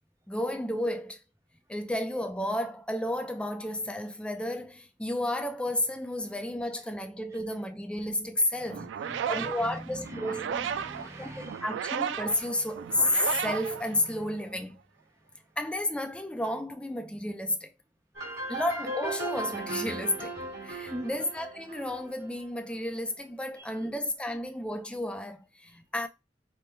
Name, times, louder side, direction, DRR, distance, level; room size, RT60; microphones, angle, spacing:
voice 1, 0.3-1.2 1.7-8.9 9.3-10.4 11.2-14.8 15.6-17.7 18.5-20.3 20.6-26.1, left 1 dB, 5° left, 0.4 m, -32 dB
voice 2, 8.4-11.7 18.5-18.6 20.9-21.2 23.6-23.9 25.6-25.8, equal, 15° right, 0.8 m, -43 dB
sound 1, 8.7-14.5, right 8 dB, 85° right, 0.3 m, -35 dB
sound 2, 18.1-22.7, right 2 dB, 65° right, 1.5 m, -37 dB
3.4 x 2.1 x 4.4 m
head